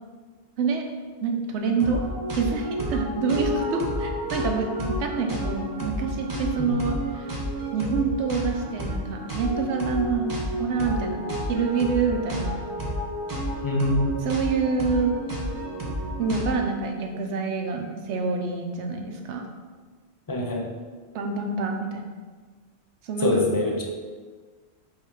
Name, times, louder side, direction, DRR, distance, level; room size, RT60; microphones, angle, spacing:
voice 1, 1.2-2.0 2.3-7.3 7.7-12.6 14.2-15.1 16.2-19.4 21.1-22.1 23.0-23.3, right 4 dB, 90° right, 3 dB, 0.9 m, -27 dB
sound 1, 1.8-16.7, equal, 20° right, 0.8 m, -31 dB
voice 2, 13.6-14.1 20.3-20.7 23.2-23.8, left 1 dB, 30° left, 0 dB, 0.4 m, -24 dB
3.5 x 3.2 x 4.6 m, 1.5 s
omnidirectional pair, 1.1 m